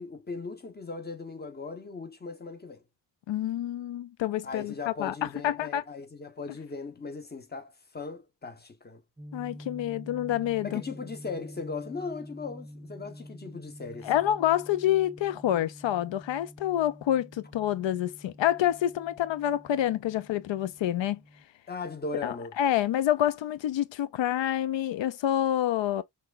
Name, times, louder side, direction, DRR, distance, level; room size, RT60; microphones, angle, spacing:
voice 1, 0.0-2.8 4.4-9.0 10.6-14.1 21.7-22.5, left 4 dB, 20° left, 1.0 m, -38 dB
voice 2, 3.3-5.8 9.3-10.8 14.0-21.2 22.2-26.0, left 12 dB, 85° left, 0.5 m, -27 dB
sound 1, 9.2-21.4, equal, 15° right, 0.5 m, -47 dB
5.9 x 3.4 x 2.4 m
wide cardioid pair, 150°, 43 cm